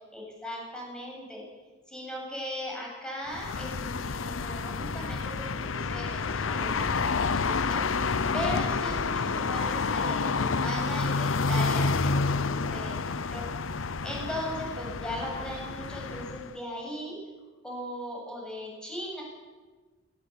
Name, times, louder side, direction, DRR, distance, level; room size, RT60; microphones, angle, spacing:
voice 1, 0.1-1.4 1.9-13.5 14.0-17.2 17.6-19.2, equal, 5° left, -2 dB, 7.7 m, -38 dB
sound 1, 3.3-16.6, left 4 dB, 80° left, 0.8 m, -29 dB
20.0 x 19.5 x 8.6 m, 1.3 s
head